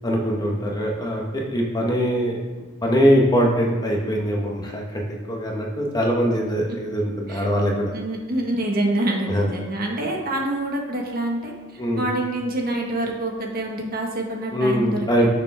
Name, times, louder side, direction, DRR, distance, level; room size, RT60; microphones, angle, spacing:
voice 1, 0.0-2.4 2.8-7.9 9.3-9.5 11.8-12.0 14.5-15.3, equal, 20° left, -1 dB, 1.5 m, -22 dB
voice 2, 7.9-15.3, right 1 dB, 45° right, 0 dB, 1.7 m, -26 dB
16.5 x 6.9 x 3.7 m, 1.3 s
head